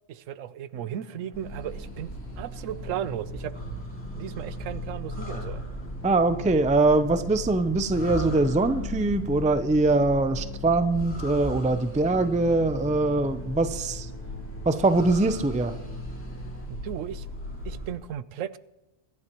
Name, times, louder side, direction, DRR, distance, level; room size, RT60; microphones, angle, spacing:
voice 1, 0.1-2.1 2.4-3.5 4.1-5.6 16.7-17.3 17.6-18.6, right 10 dB, 85° right, 16 dB, 1.0 m, -35 dB
sound 1, 0.7-16.7, left 1 dB, 10° left, 1.2 m, -44 dB
sound 2, 1.3-17.9, left 1 dB, 70° left, 4.8 m, -37 dB
voice 2, 6.0-14.1 14.6-15.8, right 2 dB, 10° right, 10 dB, 0.3 m, -23 dB
24.0 x 11.0 x 3.0 m, 0.98 s
omnidirectional pair, 1.3 m